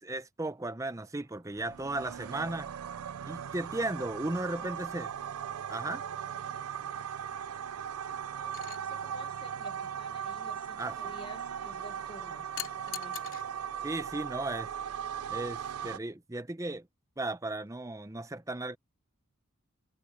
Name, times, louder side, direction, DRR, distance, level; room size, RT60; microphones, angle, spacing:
voice 1, 0.0-2.7 3.3-5.1 5.7-6.0 10.8-11.0 13.8-14.7 15.3-16.9 17.2-18.8, right 2 dB, 15° right, 0.6 m, -35 dB
sound 1, 1.5-16.0, right 8 dB, 85° right, 0.5 m, -38 dB
voice 2, 8.3-13.4, left 1 dB, 25° left, 1.5 m, -52 dB
sound 2, 8.5-8.8 12.6-13.4 14.8-15.0, left 13 dB, 65° left, 3.4 m, -41 dB
head